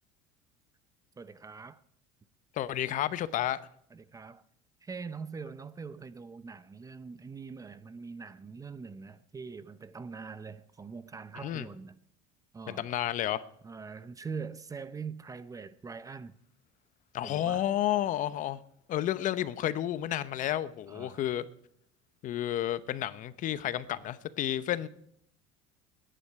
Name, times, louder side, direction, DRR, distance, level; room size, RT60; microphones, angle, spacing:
voice 1, 1.2-1.8 3.9-4.4 4.8-12.0 12.5-12.9 13.6-16.4 17.2-17.7 20.9-21.2, right 5 dB, 20° right, 0.7 m, -43 dB
voice 2, 2.6-3.6 11.4-11.7 12.7-13.4 17.1-18.6 18.9-21.4 22.2-24.9, left 12 dB, 50° left, 0.9 m, -31 dB
21.0 x 10.0 x 4.8 m
supercardioid pair, 105°, 17 cm